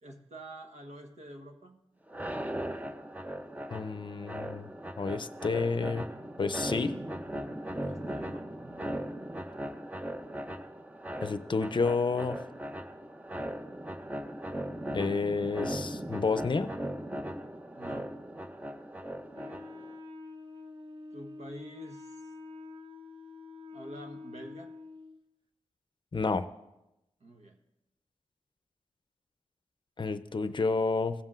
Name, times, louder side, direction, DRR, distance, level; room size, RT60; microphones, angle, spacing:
voice 1, 0.0-1.8 7.7-9.0 17.7-18.1 21.1-22.3 23.7-24.7 27.2-27.6, right 1 dB, 80° right, 4 dB, 1.1 m, -47 dB
sound 1, 2.1-19.9, right 1 dB, 15° right, 0.6 m, -38 dB
voice 2, 3.7-4.7 5.0-6.0 6.4-7.0 11.2-12.4 14.9-16.7 26.1-26.5 30.0-31.1, left 4 dB, 45° left, 11 dB, 0.5 m, -30 dB
Wind instrument woodwind instrument, 19.3-25.2, left 3 dB, 45° right, 0.9 m, -47 dB
16.0 x 7.5 x 2.5 m, 0.93 s
cardioid pair, 50°, 11 cm